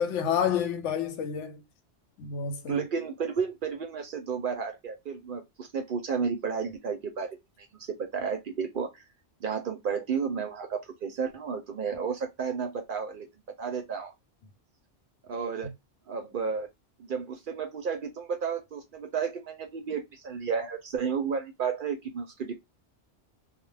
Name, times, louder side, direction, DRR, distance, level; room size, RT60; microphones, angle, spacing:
voice 1, 0.0-1.6 2.2-2.8, left 8 dB, 85° left, 0.9 m, -29 dB
voice 2, 2.7-7.4 7.8-9.0 9.4-13.3 13.6-14.1 15.3-15.7 16.1-16.7 17.0-22.5, right 6 dB, 60° right, 0.6 m, -32 dB
2.2 x 2.0 x 3.2 m
omnidirectional pair, 1.2 m